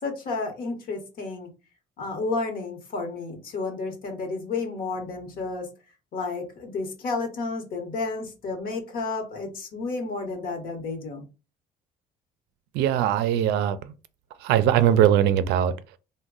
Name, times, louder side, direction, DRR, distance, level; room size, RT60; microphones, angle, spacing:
voice 1, 0.0-1.5 2.0-5.7 6.1-11.2, left 3 dB, 60° left, 1.0 m, -31 dB
voice 2, 12.7-13.9 14.4-16.0, right 10 dB, 85° right, 0.4 m, -21 dB
3.0 x 2.2 x 3.6 m
cardioid pair, 110°, 17 cm